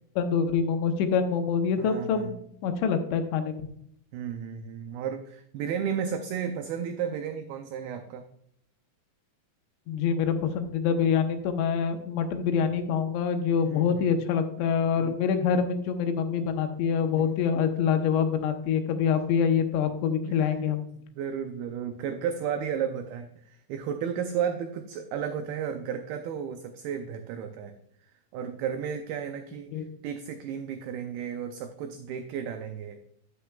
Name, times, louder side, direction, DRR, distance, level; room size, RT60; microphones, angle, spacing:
voice 1, 0.2-2.3 2.6-3.6 9.9-20.8 29.7-29.9, left 6 dB, 85° left, 6 dB, 3.2 m, -25 dB
voice 2, 1.8-2.4 4.1-8.2 13.7-14.1 15.0-15.2 17.1-17.3 20.3-20.5 21.2-27.7 28.3-33.0, right 8 dB, 85° right, 7 dB, 2.2 m, -33 dB
9.7 x 9.6 x 2.3 m, 0.71 s
omnidirectional pair, 5.1 m